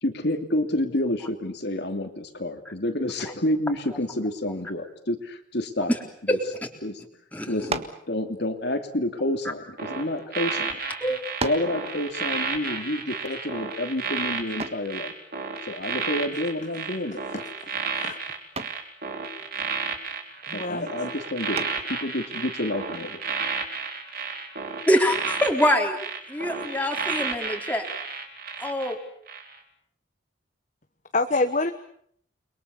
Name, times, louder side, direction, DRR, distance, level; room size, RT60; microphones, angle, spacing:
voice 1, 0.0-5.9 6.3-6.4 6.8-7.0 7.5-10.8 11.4-15.1 15.7-17.2 20.5-23.2, left 1 dB, 55° left, 5 dB, 2.8 m, -29 dB
sound 1, 7.7-8.1 9.0-10.2 10.9-11.0 11.4-11.8 14.6-14.9 16.8-17.2 17.6-17.9 18.6-18.9 21.5-22.0, right 3 dB, 30° right, 1.6 m, -34 dB
sound 2, 9.8-28.9 29.3-29.5, right 5 dB, 50° right, 4.5 m, -32 dB
voice 2, 17.1-18.2 20.5-20.9 31.1-31.7, left 3 dB, 40° left, 7 dB, 1.2 m, -28 dB
voice 3, 25.4-25.8 26.3-27.9 28.6-29.0, equal, 10° left, 2 dB, 3.8 m, -24 dB
30.0 x 23.0 x 7.1 m, 0.67 s
head